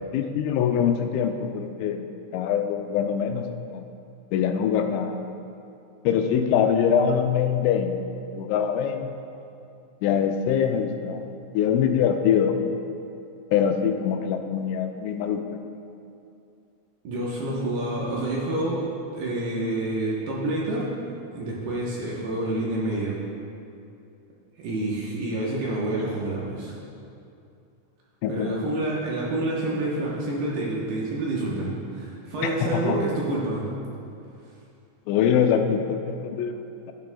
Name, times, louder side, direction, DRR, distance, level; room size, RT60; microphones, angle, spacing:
voice 1, 0.1-2.1 2.3-3.8 4.3-5.2 6.1-8.0 8.3-9.1 10.0-11.2 11.5-12.6 13.5-15.4 28.2-28.5 32.4-33.0 35.1-36.9, left 8 dB, 85° left, 5 dB, 2.9 m, -23 dB
voice 2, 17.0-18.9 19.1-23.2 24.6-26.8 28.3-33.8, right 2 dB, 75° right, -5 dB, 2.6 m, -28 dB
12.5 x 10.5 x 2.2 m, 2.6 s
omnidirectional pair, 5.5 m